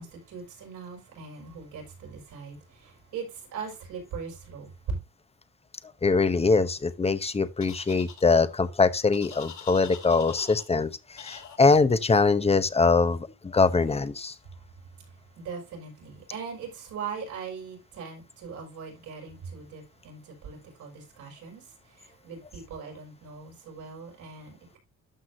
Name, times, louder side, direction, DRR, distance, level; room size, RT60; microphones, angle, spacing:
voice 1, 0.0-5.0 15.0-24.8, right 5 dB, 85° right, 5.8 m, -40 dB
voice 2, 6.0-10.9 11.2-14.3, left 4 dB, 20° left, 0.9 m, -23 dB
sound 1, 7.6-8.2 9.1-10.6 11.2-11.6, left 8 dB, 65° left, 2.9 m, -44 dB
12.5 x 6.2 x 2.7 m
cardioid pair, 90°, 30 cm